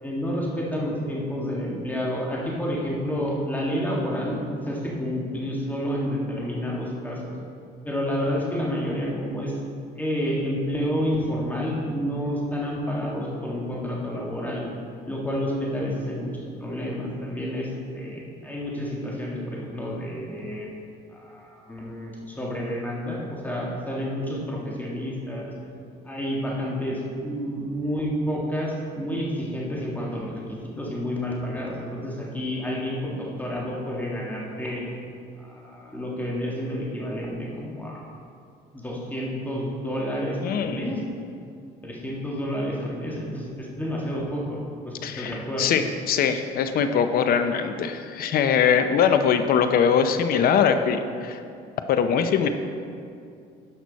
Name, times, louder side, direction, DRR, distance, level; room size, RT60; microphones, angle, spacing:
voice 1, 0.0-7.3 7.8-9.6 10.0-14.6 15.1-17.7 17.9-20.7 21.1-25.5 26.0-30.3 30.8-34.8 35.4-38.0 38.7-41.0 41.8-44.6 44.8-45.7, equal, 10° left, -3 dB, 1.8 m, -29 dB
voice 2, 40.4-40.8 45.0-51.4 51.9-52.5, left 7 dB, 60° left, 8 dB, 0.7 m, -22 dB
11.0 x 6.0 x 4.1 m, 2.4 s
cardioid pair, 110°, 17 cm